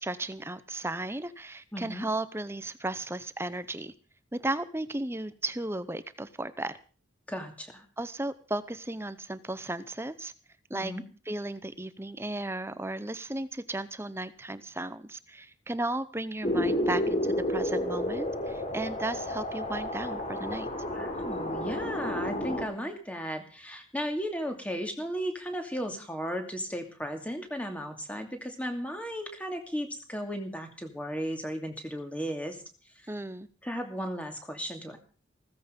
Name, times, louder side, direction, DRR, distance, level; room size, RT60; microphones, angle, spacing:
voice 1, 0.0-3.9 4.3-6.8 8.0-10.3 10.7-10.9 11.3-20.7 33.1-33.5, right 2 dB, 15° right, 14 dB, 0.7 m, -35 dB
voice 2, 1.7-2.1 7.3-7.8 10.7-11.0 20.9-32.6 32.9-33.1 33.6-35.0, equal, 5° left, 4 dB, 2.6 m, -35 dB
sound 1, 16.4-22.7, left 1 dB, 35° left, 3.6 m, -31 dB
16.0 x 14.5 x 5.3 m, 0.39 s
head